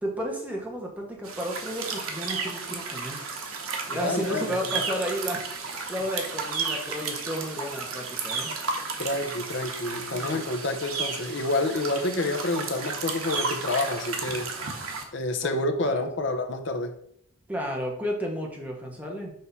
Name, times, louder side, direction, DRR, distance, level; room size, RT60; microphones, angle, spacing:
voice 1, 0.0-3.3 3.9-8.6 10.1-10.5 15.4-15.5 15.9-16.1 17.5-19.3, equal, 5° right, 1.1 m, -33 dB
sound 1, 1.2-15.0, right 4 dB, 85° right, 1.0 m, -33 dB
voice 2, 3.9-4.8 9.0-14.5 15.1-17.0, left 2 dB, 55° left, 0.8 m, -28 dB
6.6 x 2.8 x 5.3 m
head